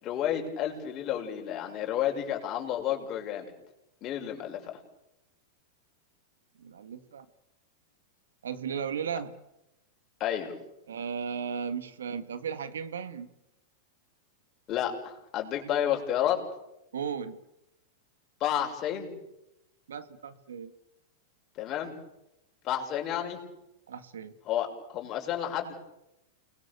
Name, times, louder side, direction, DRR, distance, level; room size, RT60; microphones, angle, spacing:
voice 1, 0.0-3.5 4.0-4.7 10.2-10.5 14.7-16.4 18.4-19.1 21.6-21.9 22.6-23.4 24.5-25.8, left 10 dB, 35° left, 2 dB, 6.3 m, -31 dB
voice 2, 6.6-7.3 8.4-9.4 10.9-13.3 16.9-17.4 19.9-20.7 23.9-24.3, right 7 dB, 90° right, 11 dB, 1.9 m, -35 dB
29.5 x 21.5 x 7.0 m, 0.89 s
hypercardioid pair, 125°, 0 cm